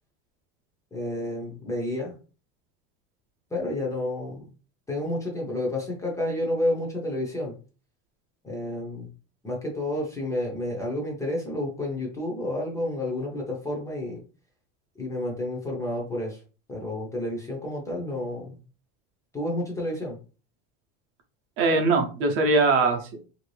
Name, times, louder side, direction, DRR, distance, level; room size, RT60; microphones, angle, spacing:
voice 1, 0.9-2.1 3.5-4.5 4.9-7.5 8.4-9.1 9.4-14.2 15.0-16.4 16.7-18.5 19.3-20.2, left 1 dB, 10° left, -2 dB, 0.5 m, -30 dB
voice 2, 21.6-23.2, right 3 dB, 45° right, 4 dB, 0.7 m, -22 dB
3.0 x 2.6 x 3.1 m, 0.36 s
cardioid pair, 170°, 31 cm